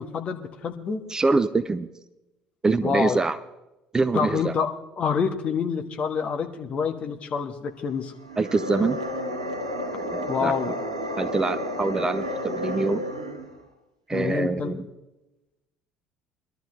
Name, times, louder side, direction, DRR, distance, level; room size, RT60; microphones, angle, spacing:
voice 1, 0.0-1.0 2.8-3.2 4.1-8.1 10.3-10.7 14.1-14.8, left 6 dB, 40° left, 4 dB, 1.5 m, -27 dB
voice 2, 1.1-1.9 2.6-3.4 3.9-4.6 8.4-9.0 10.0-10.8 11.2-13.0 14.1-14.8, right 3 dB, 20° right, 15 dB, 0.5 m, -25 dB
sound 1, 8.2-13.5, left 1 dB, 85° right, 1.9 m, -31 dB
22.5 x 12.5 x 3.3 m, 0.99 s
figure-of-eight pair, 55°, 3 cm